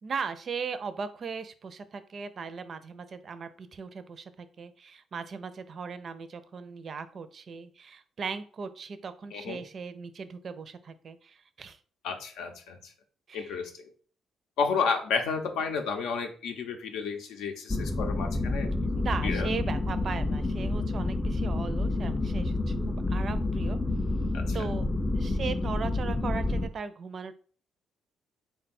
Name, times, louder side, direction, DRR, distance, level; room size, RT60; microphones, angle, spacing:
voice 1, 0.0-11.8 13.3-13.6 18.9-22.7 23.1-23.8 24.5-24.9 25.1-27.4, right 5 dB, 50° right, 12 dB, 0.4 m, -38 dB
voice 2, 9.3-9.6 12.0-12.8 13.3-13.7 14.6-18.7 19.2-19.5 24.3-24.6, left 5 dB, 90° left, 5 dB, 0.6 m, -31 dB
sound 1, 17.7-26.7, left 2 dB, 15° left, 0.4 m, -29 dB
3.6 x 2.2 x 4.1 m, 0.42 s
cardioid pair, 90°, 0 cm